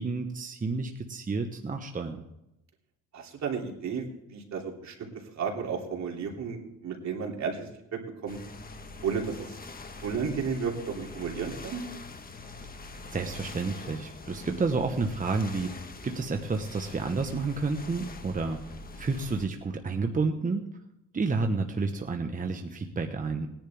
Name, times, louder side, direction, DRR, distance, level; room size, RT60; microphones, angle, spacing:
voice 1, 0.0-2.2 13.1-18.6 19.0-20.6 21.1-23.5, right 4 dB, 25° right, 4 dB, 1.2 m, -30 dB
voice 2, 3.1-4.0 4.3-5.1 5.3-8.4 9.0-9.6 10.0-11.8, right 6 dB, 65° right, 0 dB, 3.1 m, -33 dB
sound 1, 8.3-19.5, left 3 dB, 30° left, 1.4 m, -44 dB
20.0 x 10.5 x 3.6 m, 0.86 s
cardioid pair, 90°, 30 cm